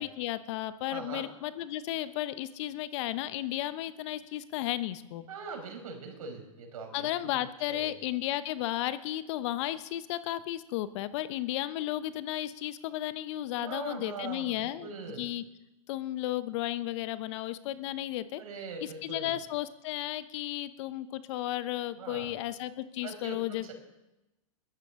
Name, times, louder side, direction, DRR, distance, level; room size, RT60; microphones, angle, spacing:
voice 1, 0.0-5.2 6.9-14.9 15.2-15.4 15.9-18.4 19.0-23.7, left 14 dB, 55° left, 14 dB, 0.9 m, -34 dB
voice 2, 0.9-1.3 5.3-7.4 7.7-7.9 13.6-15.3 18.3-19.3 22.0-22.3 23.0-23.7, right 4 dB, 75° right, 3 dB, 5.0 m, -42 dB
22.0 x 13.5 x 3.7 m, 0.96 s
hypercardioid pair, 110°, 19 cm